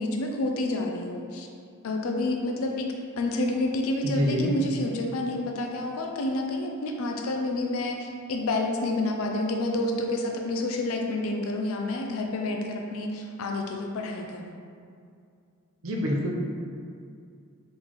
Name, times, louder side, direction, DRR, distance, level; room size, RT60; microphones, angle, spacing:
voice 1, 0.0-1.5 1.8-2.9 3.2-14.6, left 2 dB, 70° left, 2 dB, 0.4 m, -29 dB
voice 2, 4.0-4.5 15.8-16.3, left 1 dB, 65° right, -2 dB, 0.7 m, -26 dB
4.0 x 3.8 x 3.0 m, 2.3 s
head